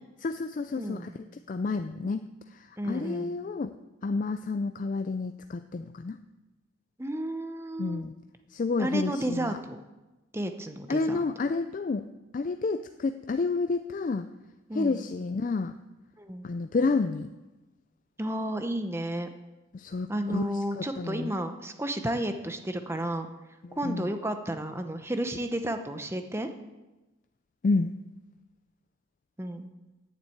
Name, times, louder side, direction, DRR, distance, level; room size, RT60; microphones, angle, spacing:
voice 1, 0.2-1.1 1.5-3.8 4.0-6.2 7.8-8.2 8.5-9.6 10.9-12.1 12.3-14.3 14.7-15.7 16.4-17.3 19.7-20.5 20.8-21.3 23.6-24.1 27.6-27.9, left 3 dB, 40° left, 9 dB, 0.3 m, -30 dB
voice 2, 0.8-1.1 2.8-3.3 7.0-8.0 8.8-9.8 10.3-11.2 14.7-15.0 16.2-16.5 18.2-19.3 20.1-23.3 23.8-26.5 29.4-29.7, right 1 dB, 15° right, 7 dB, 0.7 m, -32 dB
9.4 x 7.4 x 8.5 m, 1.1 s
head